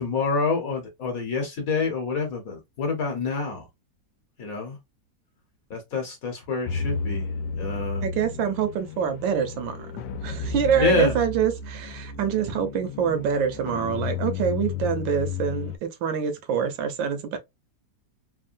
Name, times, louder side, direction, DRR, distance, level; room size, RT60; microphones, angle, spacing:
voice 1, 0.0-3.7 4.4-4.8 5.7-7.3 7.5-8.0 10.8-11.1, left 4 dB, 55° left, 1.3 m, -27 dB
sound 1, 6.7-15.8, left 4 dB, 80° left, 1.3 m, -32 dB
voice 2, 8.0-17.4, right 7 dB, 85° right, 1.5 m, -26 dB
3.6 x 2.1 x 2.5 m
omnidirectional pair, 2.0 m